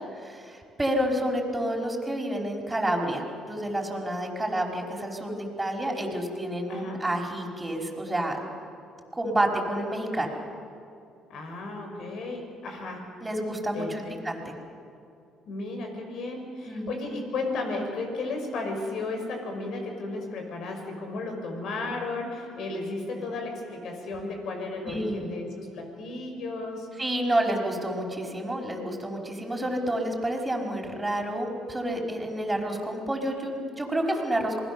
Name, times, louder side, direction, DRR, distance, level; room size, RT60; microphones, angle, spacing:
voice 1, 0.0-8.4 9.1-10.3 13.2-14.5 16.7-17.0 24.8-25.3 27.0-34.6, right 1 dB, 15° right, 0 dB, 5.2 m, -29 dB
voice 2, 6.7-7.0 11.3-13.1 13.7-14.2 15.5-26.9, left 3 dB, 65° left, 3 dB, 5.8 m, -34 dB
27.0 x 20.5 x 7.1 m, 2.6 s
supercardioid pair, 80°, 0 cm